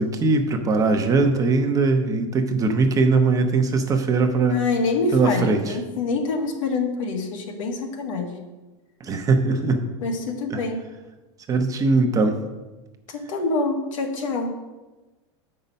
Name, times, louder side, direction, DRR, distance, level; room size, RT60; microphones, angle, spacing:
voice 1, 0.0-4.6 5.1-5.6 9.0-9.8 10.5-10.6 11.5-12.4, right 3 dB, 20° right, 6 dB, 0.7 m, -20 dB
voice 2, 4.5-8.3 10.0-10.8 13.1-14.5, left 3 dB, 85° left, 3 dB, 1.6 m, -26 dB
7.8 x 5.5 x 5.3 m, 1.2 s
supercardioid pair, 140°, 16 cm